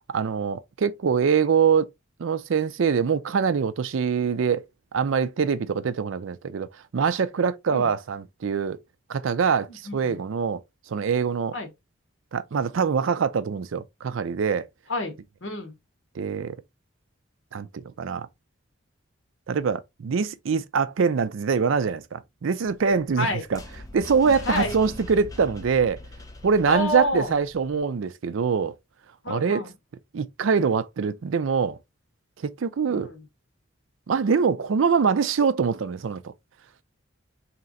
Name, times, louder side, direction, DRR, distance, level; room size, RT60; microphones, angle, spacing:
voice 1, 0.1-1.9 2.2-4.6 4.9-8.8 9.1-10.6 10.9-11.5 12.3-14.7 16.2-16.6 17.5-18.3 19.5-23.6 23.9-26.0 26.4-28.7 29.3-29.6 30.1-31.8 32.4-33.1 34.1-36.3, right 6 dB, 75° right, 0.4 m, -24 dB
voice 2, 9.9-10.2 11.5-11.7 14.9-15.7 23.2-23.4 24.2-24.8 26.7-27.3 29.2-29.7 32.9-33.2, left 1 dB, 65° left, 1.0 m, -29 dB
sound 1, 22.6-27.8, left 2 dB, 15° left, 0.4 m, -42 dB
3.2 x 2.9 x 3.8 m
head